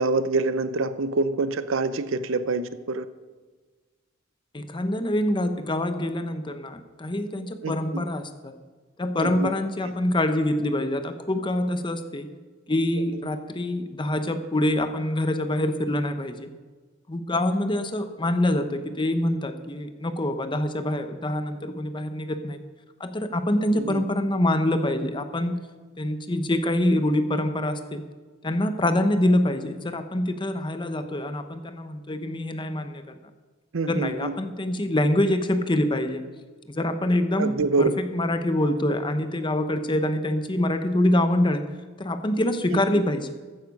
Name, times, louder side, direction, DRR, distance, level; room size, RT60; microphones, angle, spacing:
voice 1, 0.0-3.0 7.6-8.0 9.2-9.5 13.1-13.2 23.7-24.1 33.7-34.3 37.3-38.0 42.7-43.0, right 3 dB, 85° right, 13 dB, 0.7 m, -26 dB
voice 2, 4.5-8.5 9.0-12.3 12.7-16.5 17.1-22.6 23.0-25.6 26.0-28.0 28.4-33.0 33.9-36.2 36.7-41.6 42.0-43.3, left 1 dB, 25° left, 8 dB, 0.8 m, -25 dB
14.0 x 9.4 x 5.3 m, 1.4 s
head